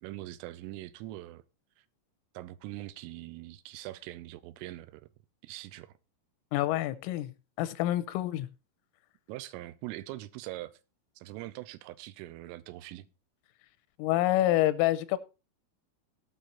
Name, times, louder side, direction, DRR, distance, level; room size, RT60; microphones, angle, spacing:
voice 1, 0.0-1.4 1.8-1.9 2.3-5.1 5.4-5.9 9.3-10.7 11.2-13.1, right 16 dB, 85° right, 3.3 m, -42 dB
voice 2, 6.5-7.3 7.6-8.5 14.0-15.2, left 14 dB, 90° left, 3.4 m, -27 dB
17.5 x 6.5 x 4.2 m
omnidirectional pair, 5.8 m